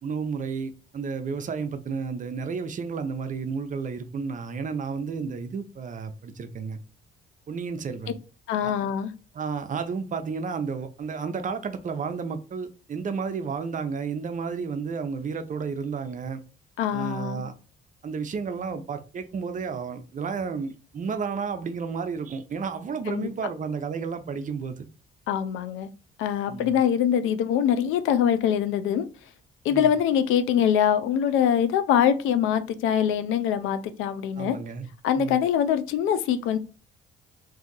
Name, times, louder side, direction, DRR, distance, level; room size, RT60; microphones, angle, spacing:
voice 1, 0.0-6.8 7.5-8.1 8.6-8.7 9.3-16.4 16.9-17.5 18.0-24.9 26.5-26.7 29.7-29.9 34.4-34.9 35.2-35.4, right 5 dB, 40° right, 0.5 m, -32 dB
voice 2, 8.5-9.1 16.8-17.4 23.1-23.3 25.3-25.9 26.2-29.1 29.6-34.6 35.0-36.6, left 9 dB, 90° left, 0.4 m, -23 dB
2.7 x 2.4 x 3.8 m
cardioid pair, 90°, 20 cm